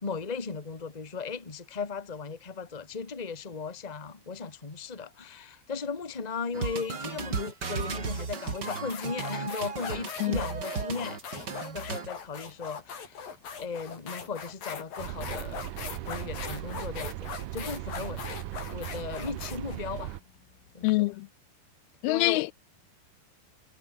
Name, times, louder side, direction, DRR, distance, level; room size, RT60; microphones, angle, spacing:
voice 1, 0.0-11.2 11.7-15.6 16.0-18.2 18.7-20.2 20.7-21.1 22.0-22.4, left 5 dB, 30° left, 0.7 m, -37 dB
sound 1, 6.5-12.1, right 5 dB, 30° right, 2.7 m, -35 dB
sound 2, 8.0-8.1 8.6-20.9, left 6 dB, 65° left, 5.7 m, -40 dB
sound 3, 15.0-20.2, right 16 dB, 75° right, 2.0 m, -38 dB
voice 2, 20.8-21.3 22.0-22.5, left 21 dB, 80° left, 2.4 m, -25 dB
omnidirectional pair, 4.5 m